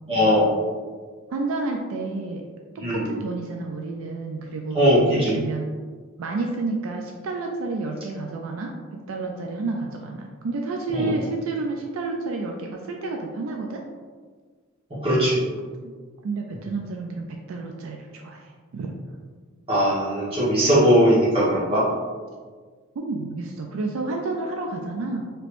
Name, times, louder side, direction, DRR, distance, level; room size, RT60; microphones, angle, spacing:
voice 1, 0.1-0.5 2.8-3.0 4.7-5.4 10.9-11.1 15.0-15.4 19.7-21.9, equal, 25° right, -9 dB, 1.1 m, -19 dB
voice 2, 1.3-2.4 2.7-4.8 5.1-5.7 6.2-13.8 15.8-15.9 16.2-19.0 23.0-25.3, right 3 dB, 75° right, 2 dB, 0.3 m, -30 dB
3.3 x 2.9 x 2.5 m, 1.5 s
head